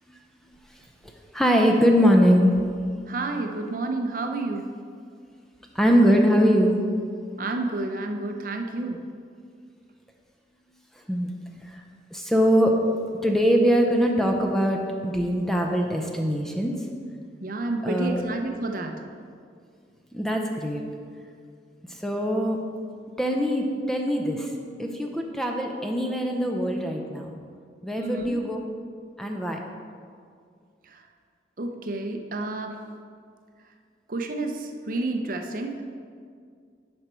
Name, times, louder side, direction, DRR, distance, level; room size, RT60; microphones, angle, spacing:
voice 1, 1.3-2.6 5.7-6.8 11.1-11.3 12.1-12.8 13.2-16.8 17.8-18.2 20.1-20.8 21.9-22.6 23.2-24.5 24.8-27.3 27.8-28.6 29.2-29.6, equal, ahead, 1 dB, 0.6 m, -22 dB
voice 2, 3.1-4.7 7.4-9.0 17.4-19.0 28.0-28.4 30.8-31.1 31.6-32.8 34.1-35.8, right 2 dB, 50° right, 4 dB, 0.6 m, -30 dB
10.5 x 5.2 x 4.4 m, 2.2 s
head